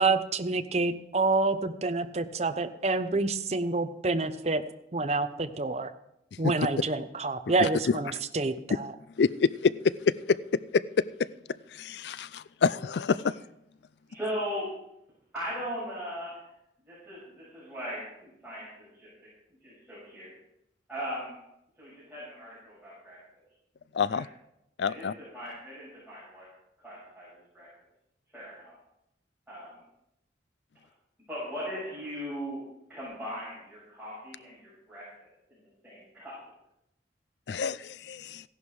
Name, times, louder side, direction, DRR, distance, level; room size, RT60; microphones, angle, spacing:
voice 1, 0.0-4.6 4.9-5.9 6.4-8.9, right 3 dB, 35° right, 9 dB, 0.8 m, -28 dB
voice 2, 7.6-8.0 9.2-9.7 10.3-10.4 10.7-10.8 11.7-13.3 23.9-24.3 24.8-25.1 37.5-38.4, left 5 dB, 70° left, 18 dB, 0.4 m, -27 dB
voice 3, 14.1-14.7 15.3-16.5 16.8-19.1 19.6-20.3 20.9-21.4 21.8-23.2 24.1-24.2 24.8-26.5 26.8-27.7 28.3-28.7 29.5-29.8 31.3-32.6 32.9-36.3, equal, 5° right, -11 dB, 6.9 m, -39 dB
15.5 x 11.0 x 4.8 m, 0.82 s
head